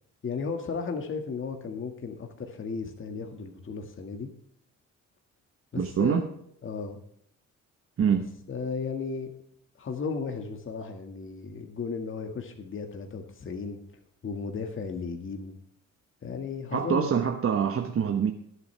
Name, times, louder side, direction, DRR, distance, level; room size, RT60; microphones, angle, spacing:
voice 1, 0.2-4.3 5.7-6.3 6.6-7.0 8.1-8.2 8.5-9.3 9.8-13.8 14.2-15.6 16.2-17.1, left 5 dB, 40° left, 4 dB, 1.9 m, -35 dB
voice 2, 5.7-6.2 8.0-8.3 16.7-18.3, right 7 dB, 45° right, 5 dB, 1.2 m, -25 dB
20.5 x 8.1 x 3.4 m, 0.70 s
cardioid pair, 90°, 30 cm